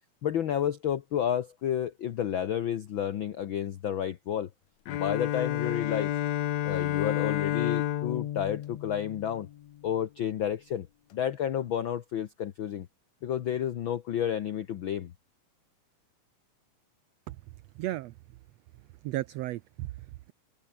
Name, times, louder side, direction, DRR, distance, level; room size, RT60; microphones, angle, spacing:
voice 1, 0.2-4.5 4.9-6.1 6.6-9.5 9.8-10.9 11.1-12.9 13.2-15.1, left 9 dB, 90° left, 1.1 m, -31 dB
Bowed string instrument, 4.9-9.7, left 12 dB, 65° left, 2.2 m, -30 dB
voice 2, 17.7-18.2 19.0-20.3, right 16 dB, 80° right, 1.5 m, -35 dB
omnidirectional pair, 3.6 m